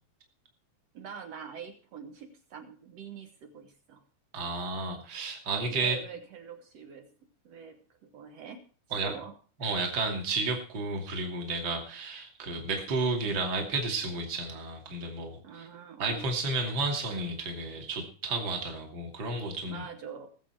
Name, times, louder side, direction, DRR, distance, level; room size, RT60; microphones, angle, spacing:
voice 1, 0.9-4.0 5.7-7.1 7.5-8.6 9.0-9.3 15.4-16.2 19.6-20.3, right 7 dB, 60° right, 6 dB, 1.8 m, -44 dB
voice 2, 4.3-6.0 8.9-9.1 9.6-15.7 16.0-19.8, right 3 dB, 30° right, 2 dB, 2.7 m, -32 dB
20.5 x 7.8 x 4.6 m, 0.40 s
omnidirectional pair, 4.2 m